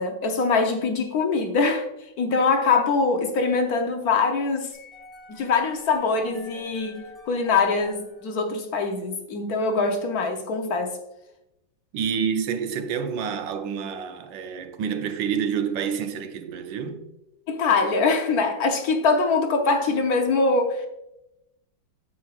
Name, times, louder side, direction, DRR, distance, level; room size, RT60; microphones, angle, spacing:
voice 1, 0.0-4.8 5.3-11.0 17.5-20.9, left 4 dB, 60° left, 1.2 m, -23 dB
sound 1, 4.7-8.8, left 2 dB, ahead, 2.5 m, -48 dB
voice 2, 11.9-17.0, right 7 dB, 85° right, 1.5 m, -28 dB
9.4 x 7.4 x 2.4 m
omnidirectional pair, 2.0 m